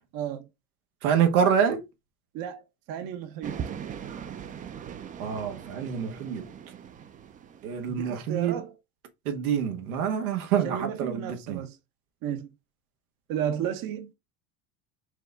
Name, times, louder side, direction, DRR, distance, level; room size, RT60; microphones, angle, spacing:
voice 1, 0.1-0.5 2.3-3.7 7.9-8.7 10.6-11.8 12.2-12.5 13.3-14.1, right 9 dB, 50° right, 0.9 m, -33 dB
voice 2, 1.0-1.9 5.2-6.5 7.6-8.6 9.2-11.6, right 8 dB, 90° right, 1.2 m, -26 dB
sound 1, 3.4-8.1, right 8 dB, 20° right, 0.3 m, -40 dB
4.8 x 2.3 x 3.9 m
supercardioid pair, 110°, 42 cm